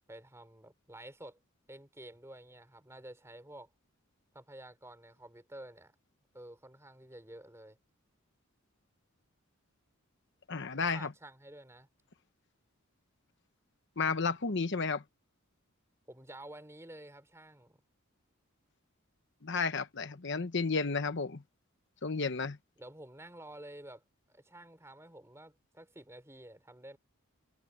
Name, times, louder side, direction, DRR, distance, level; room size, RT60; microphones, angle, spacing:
voice 1, 0.1-1.4 1.7-3.7 4.3-5.9 6.3-7.8 10.7-11.9 16.1-17.8 22.8-27.0, right 1 dB, 15° right, 3.7 m, -51 dB
voice 2, 10.5-11.1 14.0-15.0 19.4-21.4 22.0-22.6, left 4 dB, 55° left, 1.0 m, -32 dB
head